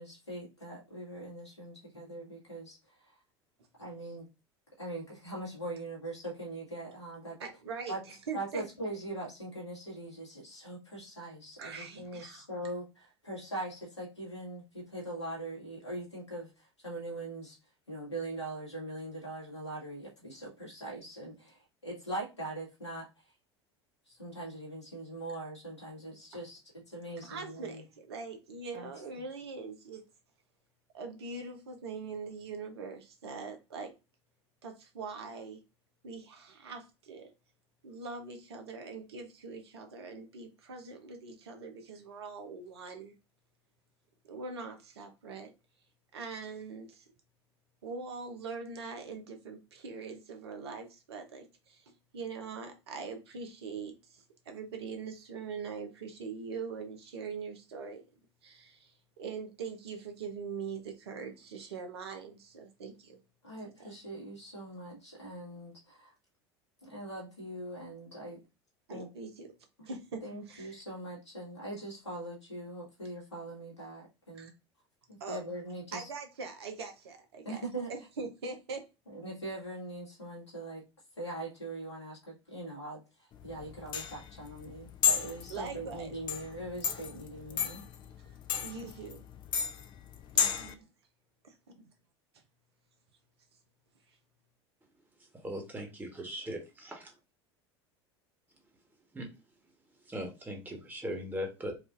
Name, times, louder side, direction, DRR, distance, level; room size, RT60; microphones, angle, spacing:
voice 1, 0.0-3.2 3.8-4.2 4.8-7.4 7.9-8.0 8.3-17.6 17.9-23.3 24.1-27.8 28.7-28.9 63.4-66.1 66.8-68.4 68.9-69.1 70.2-74.5 75.1-76.1 77.4-77.9 79.1-80.8 81.2-87.8, right 1 dB, 85° left, 2.0 m, -41 dB
voice 2, 7.4-8.6 11.6-12.5 27.2-30.0 30.9-33.9 34.6-35.6 36.0-37.3 37.8-43.1 44.3-45.5 46.1-47.1 47.8-58.0 58.4-63.2 63.8-64.0 68.9-69.5 69.9-70.2 70.5-70.8 74.3-74.5 75.2-75.4 75.9-78.8 85.5-86.1 88.2-89.2 90.3-90.9 91.4-91.5, right 5 dB, 70° right, 0.9 m, -42 dB
sound 1, 83.3-90.7, left 7 dB, 35° left, 0.5 m, -33 dB
voice 3, 95.3-95.9 96.2-97.1 99.1-99.3 100.1-101.7, equal, 10° right, 1.3 m, -39 dB
4.7 x 2.5 x 2.5 m
figure-of-eight pair, 75°, 14 cm